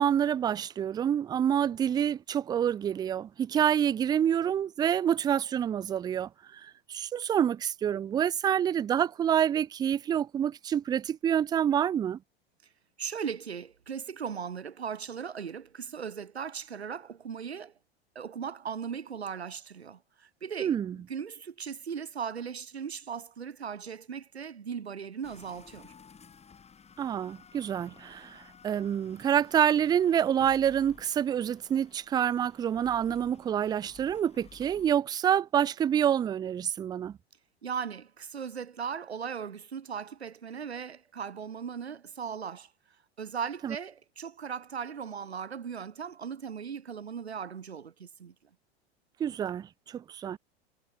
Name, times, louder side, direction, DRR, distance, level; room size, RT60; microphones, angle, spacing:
voice 1, 0.0-6.6 6.9-12.2 20.6-21.0 27.0-37.2 43.6-43.8 49.2-50.4, right 9 dB, 15° right, 0.4 m, -27 dB
voice 2, 13.0-17.7 18.1-25.9 37.6-42.7 43.2-48.3, right 7 dB, 75° right, 2.7 m, -38 dB
sound 1, 25.2-34.9, left 6 dB, 20° left, 4.1 m, -55 dB
figure-of-eight pair, 85°, 32 cm